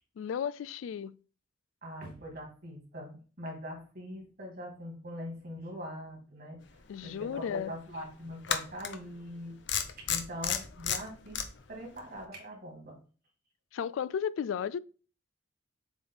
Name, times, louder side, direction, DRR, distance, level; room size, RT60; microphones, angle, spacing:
voice 1, 0.2-1.2 6.9-7.7 13.7-14.8, left 7 dB, 80° left, 0.3 m, -34 dB
voice 2, 1.8-6.6 7.0-9.6 10.1-11.4 11.7-13.0, equal, 50° right, 2.6 m, -42 dB
sound 1, 7.1-7.2 8.4-9.0 9.7-11.4, left 8 dB, 60° left, 0.7 m, -31 dB
7.2 x 3.4 x 3.9 m
head